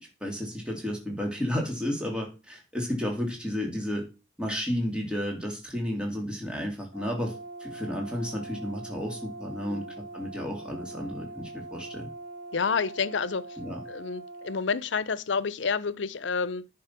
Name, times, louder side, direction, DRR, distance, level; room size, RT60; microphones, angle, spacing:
voice 1, 0.2-4.0 4.4-7.3 7.6-12.1 13.6-13.8, equal, 5° right, 3.0 m, -32 dB
Brass instrument, 6.9-14.6, right 2 dB, 65° right, 3.6 m, -42 dB
voice 2, 12.5-13.6 13.9-16.7, left 5 dB, 90° left, 0.7 m, -29 dB
10.5 x 5.4 x 5.9 m
head